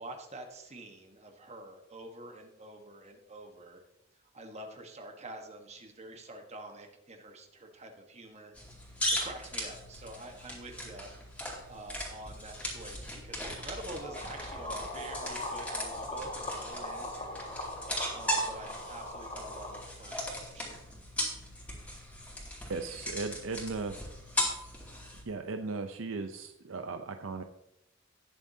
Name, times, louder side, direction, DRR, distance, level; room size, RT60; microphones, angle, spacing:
voice 1, 0.0-3.8 4.3-8.5 8.8-11.1 11.7-17.5 18.1-20.8, right 2 dB, 35° right, 4 dB, 1.3 m, -47 dB
sound 1, 8.6-25.2, equal, 5° left, 2.5 m, -38 dB
sound 2, 13.7-19.8, left 1 dB, 30° left, 2.5 m, -40 dB
voice 2, 22.7-23.9 25.3-27.4, right 3 dB, 70° right, 6 dB, 0.6 m, -37 dB
18.5 x 7.1 x 2.8 m, 0.87 s
head